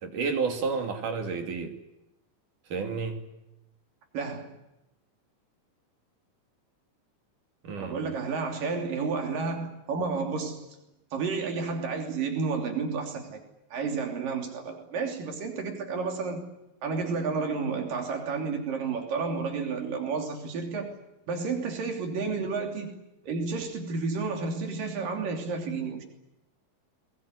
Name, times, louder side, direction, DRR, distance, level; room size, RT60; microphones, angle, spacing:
voice 1, 0.0-1.7 2.7-3.2 7.6-8.1, right 5 dB, 70° right, 4.2 m, -31 dB
voice 2, 4.1-4.5 7.8-10.6 11.1-13.4 13.7-16.5 16.8-20.9 21.3-23.0 23.3-26.0, right 4 dB, 90° right, 4.8 m, -31 dB
22.0 x 21.5 x 9.7 m
omnidirectional pair, 3.8 m